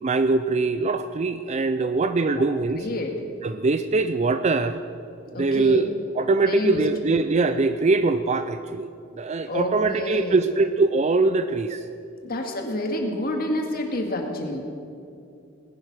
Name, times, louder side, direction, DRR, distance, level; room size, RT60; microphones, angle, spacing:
voice 1, 0.0-2.9 3.4-4.8 5.4-5.9 6.2-8.9 9.2-11.8, right 3 dB, 35° right, 10 dB, 0.5 m, -22 dB
voice 2, 2.8-3.2 5.3-5.8 6.4-6.8 9.5-10.5 12.2-14.6, left 1 dB, 50° left, 3 dB, 2.0 m, -28 dB
19.0 x 11.0 x 6.1 m, 2.6 s
head